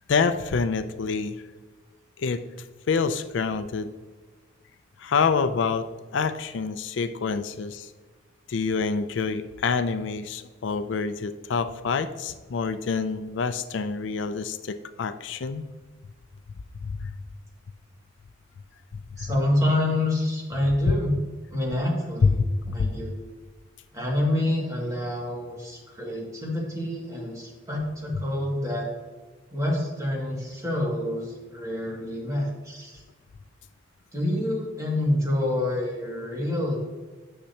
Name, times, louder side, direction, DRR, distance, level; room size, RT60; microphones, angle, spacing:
voice 1, 0.1-1.4 2.2-2.4 2.9-3.9 5.0-7.9 8.5-15.6 16.8-17.1 18.9-19.3 22.2-22.3 22.7-22.9, left 5 dB, 65° left, 11 dB, 0.4 m, -27 dB
voice 2, 19.2-21.2 21.5-22.4 22.7-23.1 23.9-28.9 29.5-33.0 34.1-36.8, left 1 dB, 15° right, -3 dB, 2.2 m, -27 dB
10.0 x 6.5 x 2.9 m, 1.4 s
head